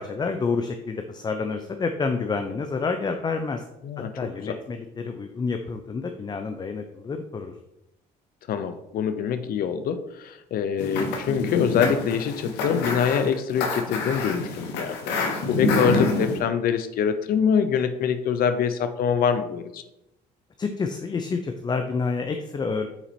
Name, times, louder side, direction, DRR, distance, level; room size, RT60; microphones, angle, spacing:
voice 1, 0.0-3.6 4.2-7.5 20.6-22.9, left 4 dB, 25° left, 6 dB, 0.5 m, -28 dB
voice 2, 8.5-15.0 15.4-19.8, left 7 dB, 60° left, 11 dB, 0.7 m, -24 dB
sound 1, 10.8-16.4, left 3 dB, 90° left, 1.1 m, -27 dB
5.9 x 4.4 x 4.2 m, 0.87 s
cardioid pair, 110°, 17 cm